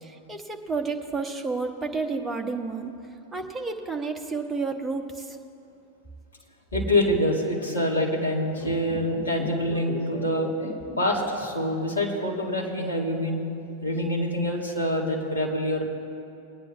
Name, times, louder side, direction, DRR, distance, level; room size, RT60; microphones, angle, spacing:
voice 1, 0.0-2.9 3.3-5.4, right 4 dB, 10° right, 3 dB, 1.0 m, -31 dB
voice 2, 6.7-10.5 11.0-13.4 13.8-15.8, left 1 dB, 75° left, -2 dB, 2.2 m, -26 dB
sound 1, 8.5-11.9 12.2-12.3, left 1 dB, 40° left, 1.9 m, -38 dB
22.5 x 9.6 x 2.7 m, 2.7 s
figure-of-eight pair, 90°, 0 cm